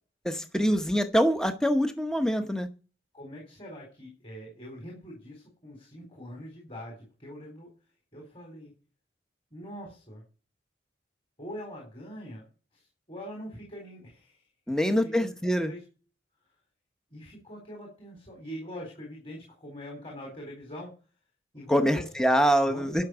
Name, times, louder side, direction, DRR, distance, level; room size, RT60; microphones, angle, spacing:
voice 1, 0.2-2.7 14.7-15.7 21.7-23.0, equal, 5° left, 7 dB, 0.9 m, -24 dB
voice 2, 3.1-7.7 8.1-8.7 9.5-10.2 11.4-12.4 12.7-14.4 14.8-15.3 15.6-15.8 17.1-20.9 21.5-22.1 22.4-23.1, equal, 30° left, -1 dB, 4.1 m, -43 dB
12.0 x 5.9 x 7.9 m, 0.36 s
head